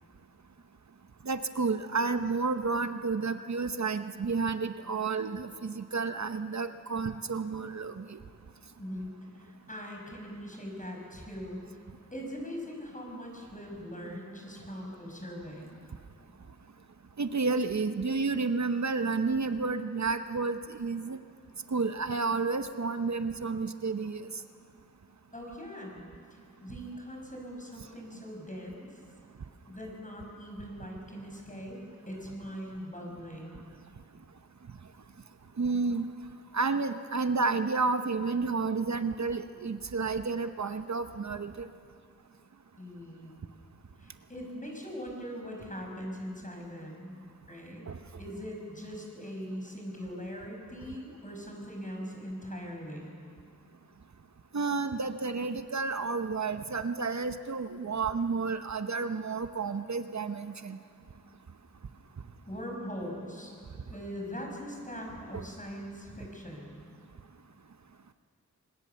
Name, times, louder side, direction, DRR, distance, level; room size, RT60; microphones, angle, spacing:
voice 1, 1.3-8.2 17.2-21.2 21.7-24.3 35.6-36.1 36.5-41.7 47.9-48.0 54.5-60.8 65.3-65.4, right 4 dB, 65° right, 9 dB, 0.8 m, -31 dB
voice 2, 8.8-11.6 12.1-15.8 25.3-26.0 26.3-29.0 29.7-31.8 32.1-33.6 42.8-43.3 44.0-47.2 47.5-47.9 48.2-53.1 62.5-63.5 63.9-66.8, equal, 25° left, 0 dB, 6.1 m, -41 dB
24.5 x 21.0 x 7.0 m, 2.3 s
wide cardioid pair, 60°, 30 cm